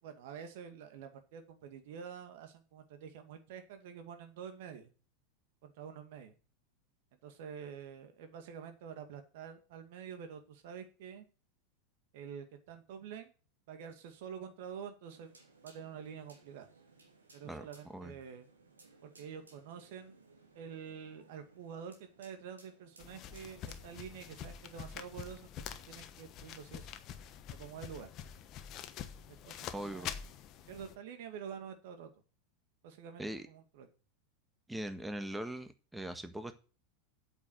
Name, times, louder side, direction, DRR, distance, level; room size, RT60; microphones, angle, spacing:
voice 1, 0.0-4.9 5.6-6.3 7.2-11.2 12.1-13.3 13.7-15.3 15.6-16.7 17.3-18.5 19.0-20.2 20.5-26.9 27.5-28.1 29.3-30.2 30.7-32.2 32.8-33.9, right 7 dB, 55° right, 7 dB, 2.2 m, -47 dB
sound 1, 15.1-24.3, right 3 dB, 80° right, 2.8 m, -63 dB
sound 2, 23.0-31.0, left 9 dB, 40° left, 1.1 m, -46 dB
voice 2, 29.7-30.1 33.2-33.5 34.7-36.5, right 1 dB, 5° right, 9 dB, 1.5 m, -41 dB
8.4 x 7.4 x 8.0 m, 0.37 s
figure-of-eight pair, 85°, 0 cm